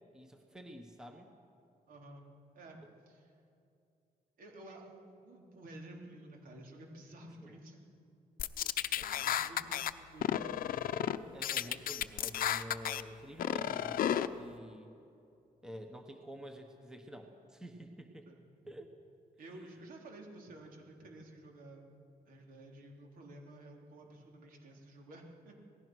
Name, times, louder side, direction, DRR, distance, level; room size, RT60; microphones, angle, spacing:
voice 1, 0.1-1.3 7.4-7.6 8.6-8.7 9.0-9.3 11.3-14.9 15.6-18.3 18.7-18.9 19.5-19.6, equal, 5° right, 4 dB, 1.2 m, -49 dB
voice 2, 1.9-2.3 2.6-2.8 3.1-3.3 4.4-7.9 9.2-10.8 18.3-18.4 19.4-21.8 22.3-25.7, right 1 dB, 65° right, 1 dB, 3.6 m, -52 dB
sound 1, 8.4-9.9 10.2-11.2 11.4-13.0 13.4-14.3, left 10 dB, 70° left, 0.7 m, -33 dB
27.0 x 19.0 x 6.2 m, 2.6 s
wide cardioid pair, 175°, 15 cm